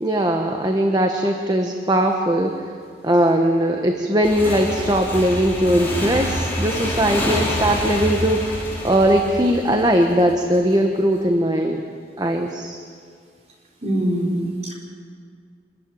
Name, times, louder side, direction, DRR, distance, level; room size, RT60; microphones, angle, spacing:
voice 1, 0.0-2.6 3.0-11.8 12.2-12.8, right 1 dB, 20° right, 3 dB, 1.2 m, -19 dB
Motorcycle / Engine, 4.2-10.6, left 1 dB, 10° left, 4.7 m, -27 dB
voice 2, 13.8-14.7, right 1 dB, 40° right, -1 dB, 4.4 m, -23 dB
24.5 x 14.5 x 9.3 m, 2.1 s
head